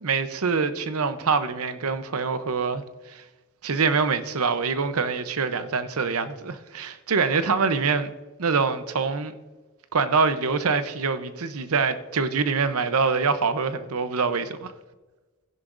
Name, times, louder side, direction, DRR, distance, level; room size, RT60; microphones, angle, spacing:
voice 1, 0.0-2.8 3.1-3.2 3.6-8.1 8.4-9.3 9.9-14.7, right 5 dB, 80° right, 0.8 m, -25 dB
15.0 x 11.0 x 2.6 m
head